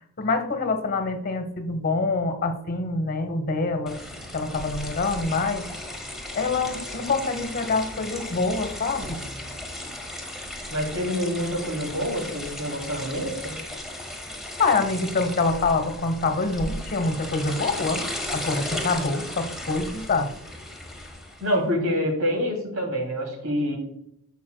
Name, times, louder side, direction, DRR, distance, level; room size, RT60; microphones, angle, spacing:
voice 1, 0.2-4.0 4.3-5.7 6.3-9.2 14.6-18.0 18.3-20.3, left 3 dB, 45° left, 8 dB, 1.1 m, -25 dB
sound 1, 3.9-21.5, left 1 dB, ahead, 1.4 m, -36 dB
voice 2, 10.7-13.5 21.4-23.8, equal, 85° right, 1 dB, 2.8 m, -26 dB
14.5 x 5.5 x 2.3 m, 0.78 s
head